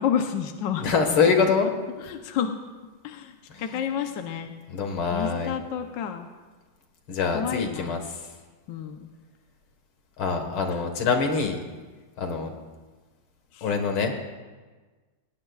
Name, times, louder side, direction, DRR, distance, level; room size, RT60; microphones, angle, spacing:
voice 1, 0.0-0.9 2.0-2.6 3.0-4.5 5.1-6.3 7.3-8.0 8.7-9.1 10.7-10.8 13.5-13.7, left 8 dB, 70° left, 5 dB, 1.5 m, -30 dB
voice 2, 0.8-1.7 3.5-3.9 4.7-5.5 7.1-8.0 10.2-11.6 12.2-12.5 13.6-14.2, left 5 dB, 85° left, 5 dB, 2.5 m, -24 dB
26.5 x 18.5 x 2.4 m, 1.3 s
omnidirectional pair, 2.2 m